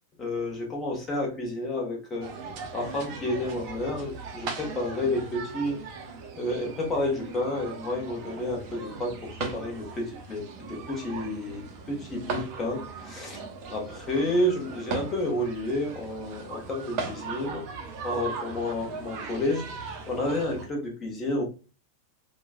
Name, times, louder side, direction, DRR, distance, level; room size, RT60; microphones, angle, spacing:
voice 1, 0.2-2.3 2.7-5.8 6.3-13.4 13.7-17.6 18.0-21.4, left 1 dB, 20° left, 0 dB, 1.0 m, -30 dB
sound 1, 2.2-20.7, right 4 dB, 40° right, 0.6 m, -38 dB
2.9 x 2.2 x 2.3 m, 0.34 s
figure-of-eight pair, 90°, 0 cm